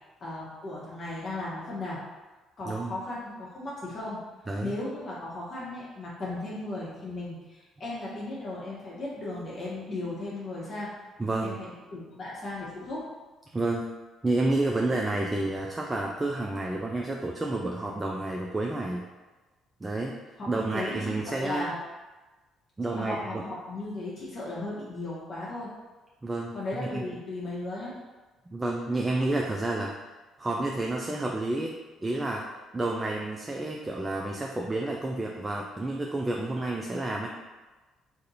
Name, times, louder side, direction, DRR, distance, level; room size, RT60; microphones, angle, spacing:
voice 1, 0.2-2.0 2.6-4.2 4.6-10.9 11.4-13.1 20.4-21.8 22.9-25.7 26.5-28.0, left 2 dB, 50° left, -7 dB, 0.9 m, -36 dB
voice 2, 11.2-11.6 13.5-13.8 14.2-19.1 19.8-20.1 20.5-21.7 22.8-23.4 26.2-27.0 28.5-29.9 30.4-31.7 32.0-32.4 32.7-37.3, right 2 dB, 20° right, 0 dB, 0.4 m, -30 dB
2.7 x 2.6 x 4.0 m, 1.2 s
supercardioid pair, 60°, 0 cm